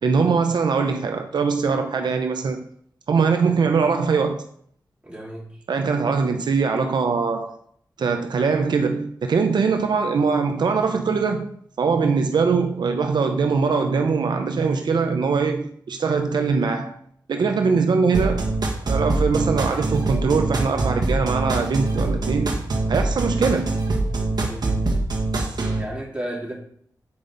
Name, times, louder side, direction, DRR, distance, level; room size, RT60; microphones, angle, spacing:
voice 1, 0.0-2.6 3.1-4.4 5.7-7.6 8.0-17.0 17.3-18.5 18.9-22.6 22.9-23.8, right 5 dB, 85° right, 0.7 m, -22 dB
voice 2, 5.0-5.6 24.3-25.0 25.8-26.5, right 1 dB, 15° right, 3.4 m, -34 dB
sound 1, 18.1-25.8, right 2 dB, 70° right, 1.4 m, -24 dB
8.5 x 5.0 x 4.0 m
cardioid pair, 60°, 7 cm